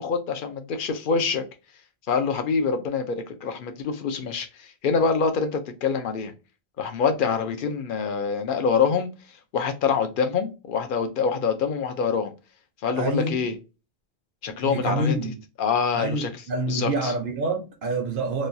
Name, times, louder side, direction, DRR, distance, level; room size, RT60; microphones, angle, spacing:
voice 1, 0.0-1.4 2.1-6.3 6.8-9.1 9.5-12.3 12.8-13.6 14.4-15.1 15.6-16.3 16.7-17.1, left 5 dB, 60° left, 0.7 m, -25 dB
voice 2, 13.0-13.5 14.5-15.4 15.9-18.5, right 2 dB, 65° right, 0.8 m, -27 dB
3.1 x 2.2 x 2.6 m
omnidirectional pair, 1.0 m